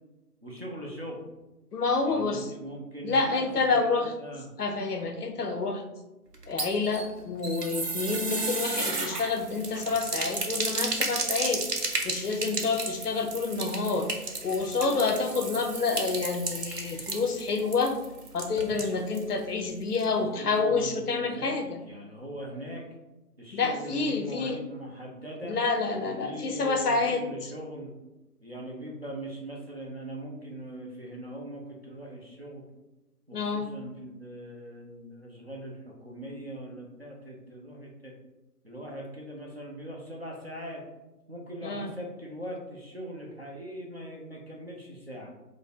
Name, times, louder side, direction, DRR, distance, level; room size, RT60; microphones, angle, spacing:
voice 1, 0.4-1.2 2.0-4.5 20.0-22.8 23.4-25.6 26.0-27.9 28.4-32.6 33.3-38.1 38.6-40.8 41.3-45.3, right 1 dB, 45° right, -2 dB, 0.5 m, -40 dB
voice 2, 1.7-2.4 3.0-4.1 4.6-5.8 6.5-11.6 12.0-14.1 14.4-18.0 18.3-21.8 23.5-24.6 25.4-27.2 33.3-33.8 41.6-41.9, left 4 dB, 75° left, 5 dB, 0.6 m, -28 dB
sound 1, 6.3-19.3 19.6-19.7 20.0-20.1, right 3 dB, 80° right, 0.7 m, -33 dB
2.6 x 2.1 x 3.9 m, 1.0 s
figure-of-eight pair, 160°, 47 cm